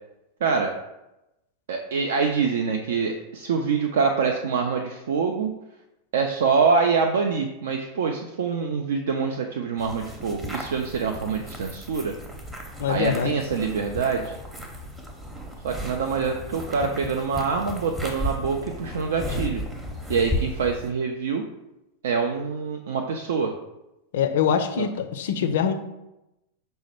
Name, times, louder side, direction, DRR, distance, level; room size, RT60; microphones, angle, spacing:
voice 1, 0.4-0.7 1.7-5.5 6.1-12.2 12.9-14.4 15.6-19.6 20.1-21.4 22.0-23.5 24.8-24.9, right 5 dB, 60° right, 3 dB, 0.4 m, -25 dB
sound 1, 9.8-20.9, equal, 10° right, 0.7 m, -34 dB
voice 2, 12.8-13.3 24.1-25.7, left 8 dB, 55° left, 8 dB, 0.4 m, -24 dB
5.4 x 2.1 x 4.4 m, 0.93 s
figure-of-eight pair, 90°, 0 cm